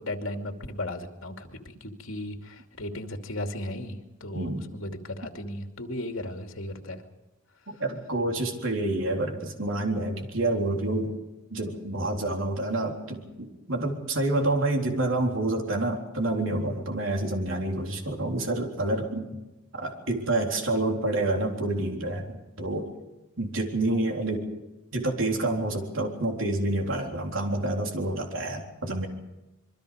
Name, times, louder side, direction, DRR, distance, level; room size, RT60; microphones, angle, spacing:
voice 1, 0.0-7.0, left 1 dB, 85° left, 4 dB, 2.7 m, -36 dB
voice 2, 4.3-4.7 7.7-11.2 11.5-19.4 19.7-22.9 23.4-24.5 24.9-29.1, right 2 dB, 75° right, 1 dB, 3.9 m, -28 dB
26.5 x 23.0 x 5.1 m, 1.0 s
head